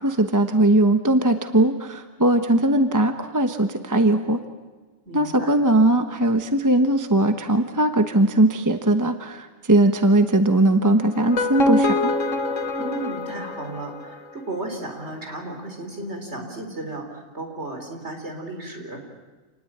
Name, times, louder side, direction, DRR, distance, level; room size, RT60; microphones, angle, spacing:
voice 1, 0.0-4.4 5.1-12.1, right 1 dB, 15° right, 7 dB, 1.1 m, -19 dB
voice 2, 5.1-5.6 12.8-19.1, right 2 dB, 60° right, 3 dB, 4.2 m, -34 dB
sound 1, 11.1-14.3, left 2 dB, 75° left, 1.9 m, -25 dB
28.0 x 19.5 x 8.7 m, 1.3 s
omnidirectional pair, 1.3 m